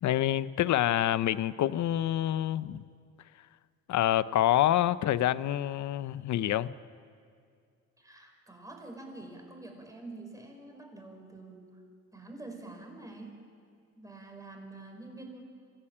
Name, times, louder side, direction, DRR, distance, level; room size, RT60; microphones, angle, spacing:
voice 1, 0.0-2.8 3.9-6.7, left 12 dB, 70° left, 16 dB, 0.8 m, -27 dB
voice 2, 8.0-11.8 12.1-13.4 14.0-15.4, right 2 dB, 10° right, 2 dB, 5.4 m, -46 dB
27.0 x 16.5 x 8.8 m, 2.3 s
cardioid pair, 90°, 30 cm